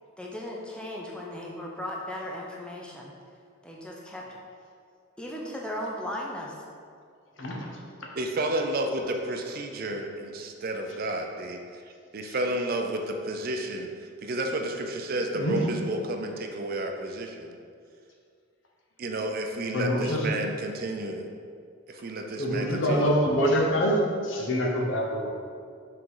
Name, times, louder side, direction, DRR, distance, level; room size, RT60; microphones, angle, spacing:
voice 1, 0.2-3.1 3.6-4.2 5.2-6.5, left 1 dB, 5° left, -2 dB, 0.6 m, -36 dB
voice 2, 8.2-11.6 12.1-13.9 14.2-17.5 19.0-21.3 21.9-23.1, right 1 dB, 45° right, 4 dB, 0.5 m, -31 dB
voice 3, 19.7-20.2 22.4-24.0 24.2-25.3, equal, 60° left, -1 dB, 1.0 m, -25 dB
5.7 x 3.8 x 4.8 m, 2.2 s
head